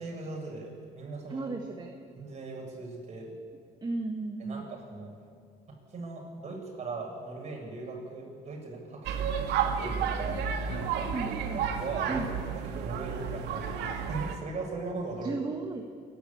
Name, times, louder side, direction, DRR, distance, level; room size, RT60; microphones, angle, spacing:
voice 1, 0.0-1.5 2.1-3.3 4.4-5.1 5.7-9.3 9.6-12.2 12.5-15.4, right 3 dB, 40° right, -1 dB, 7.2 m, -39 dB
voice 2, 1.3-2.0 3.8-4.6 11.1-11.6 12.1-12.3 15.2-15.9, right 3 dB, 25° right, 4 dB, 1.5 m, -34 dB
sound 1, 9.0-14.4, right 7 dB, 80° right, 2.2 m, -31 dB
28.0 x 12.0 x 8.5 m, 2.2 s
cardioid pair, 110°, 17 cm